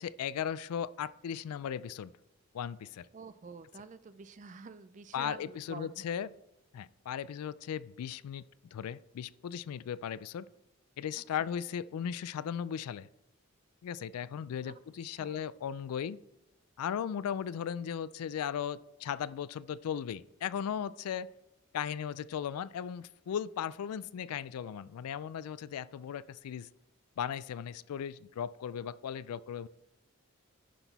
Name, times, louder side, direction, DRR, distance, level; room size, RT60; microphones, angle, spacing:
voice 1, 0.0-2.1 2.5-3.1 5.1-6.3 6.7-8.4 8.7-10.5 11.0-13.1 13.8-16.2 16.8-21.3 21.7-26.7 27.2-29.7, left 8 dB, 80° left, 19 dB, 0.3 m, -37 dB
voice 2, 3.1-6.1 11.1-11.6 14.6-15.4, right 4 dB, 35° right, 14 dB, 0.4 m, -49 dB
10.0 x 5.9 x 4.1 m, 0.89 s
head